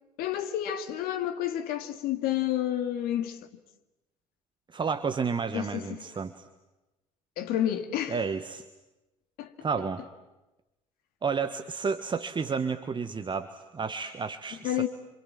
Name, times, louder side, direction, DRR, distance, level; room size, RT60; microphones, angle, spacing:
voice 1, 0.2-3.4 5.5-6.0 7.4-8.3 9.4-9.5 14.6-14.9, left 11 dB, 60° left, 2.3 m, -30 dB
voice 2, 4.7-6.5 8.1-8.6 9.6-10.0 11.2-14.9, right 5 dB, 25° right, 1.5 m, -31 dB
29.0 x 26.5 x 7.6 m
figure-of-eight pair, 55°, 18 cm